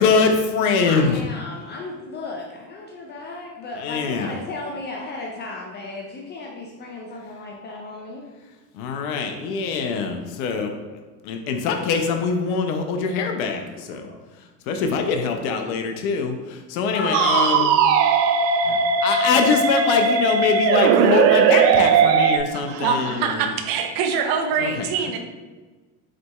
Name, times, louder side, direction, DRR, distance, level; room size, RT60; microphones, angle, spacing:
voice 1, 0.0-1.2 3.8-4.3 8.7-10.8 11.2-14.1 14.7-17.7 18.6-23.4 24.6-24.9, left 5 dB, 60° left, 5 dB, 0.7 m, -23 dB
voice 2, 0.8-8.3 16.9-17.7, left 2 dB, 25° left, -1 dB, 0.4 m, -34 dB
sound 1, 17.1-22.4, right 6 dB, 75° right, 0.6 m, -18 dB
voice 3, 22.5-25.2, right 6 dB, 45° right, 5 dB, 0.8 m, -24 dB
5.0 x 4.1 x 2.3 m, 1.3 s
hypercardioid pair, 100°, 49 cm